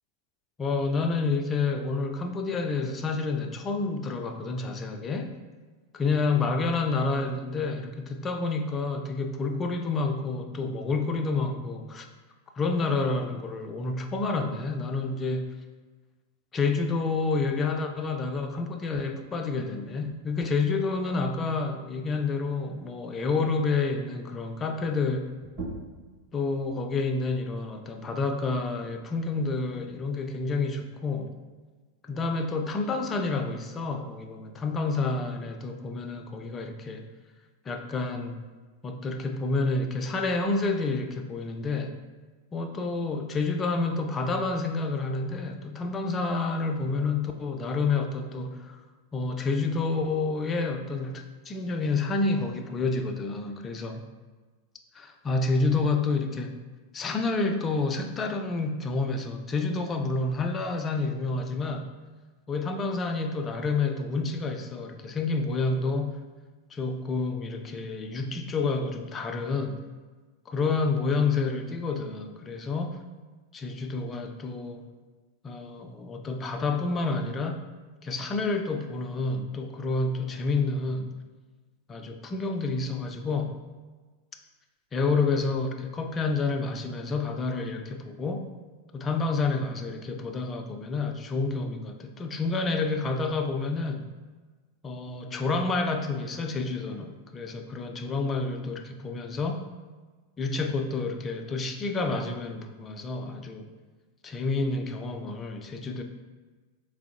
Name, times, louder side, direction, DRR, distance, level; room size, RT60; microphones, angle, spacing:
voice 1, 0.6-5.3 6.0-12.1 12.6-15.5 16.5-25.3 26.3-31.4 32.1-37.1 37.7-38.4 38.8-41.9 42.5-48.8 49.1-54.0 54.9-56.5 56.9-61.9 62.5-66.2 66.7-69.8 70.5-73.0 73.5-74.9 75.4-77.6 78.0-81.1 81.9-83.6 84.9-88.5 88.9-94.1 94.8-99.6 100.4-103.7 104.2-106.0, left 3 dB, 20° left, 5 dB, 0.3 m, -29 dB
sound 1, 25.4-30.6, right 3 dB, 30° right, 1.1 m, -45 dB
3.6 x 3.3 x 2.4 m, 1.4 s
figure-of-eight pair, 90°, 0 cm